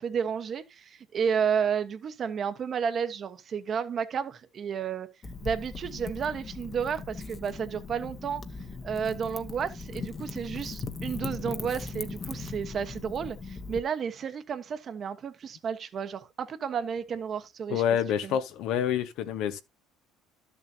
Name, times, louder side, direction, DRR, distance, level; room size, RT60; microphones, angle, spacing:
voice 1, 0.0-5.1 5.4-8.4 8.8-17.8 18.2-18.4, right 7 dB, 40° right, 1.2 m, -32 dB
Wind / Fire, 5.2-13.8, left 4 dB, 25° left, 1.1 m, -39 dB
voice 2, 17.7-19.6, left 9 dB, 65° left, 1.1 m, -27 dB
12.5 x 7.0 x 2.8 m
cardioid pair, 125°, 0 cm